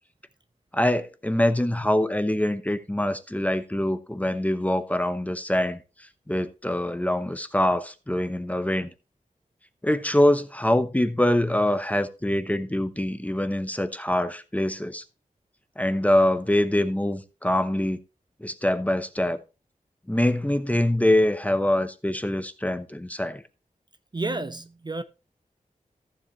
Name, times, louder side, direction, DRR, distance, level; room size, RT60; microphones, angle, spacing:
voice 1, 0.7-8.9 9.8-15.0 15.8-18.0 18.4-19.4 20.1-23.4, left 1 dB, 10° left, 0.8 m, -24 dB
voice 2, 24.1-25.0, right 2 dB, 30° right, 0.7 m, -30 dB
14.5 x 7.3 x 3.1 m
wide cardioid pair, 110°, 14 cm